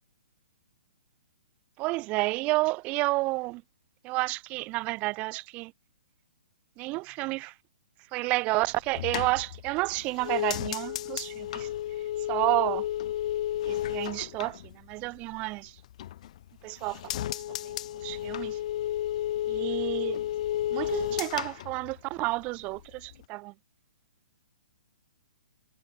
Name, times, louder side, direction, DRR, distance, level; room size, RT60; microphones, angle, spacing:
voice 1, 1.8-3.6 4.0-5.7 6.8-7.5 8.1-11.7 12.3-12.9 13.6-15.8 16.6-17.7 18.0-18.6 19.5-20.2 20.7-23.5, right 23 dB, 25° right, 1.6 m, -30 dB
sound 1, 8.6-15.4 15.8-16.5 16.8-22.5 22.8-23.2, left 12 dB, 45° left, 6.1 m, -32 dB
figure-of-eight pair, 120°, 5 cm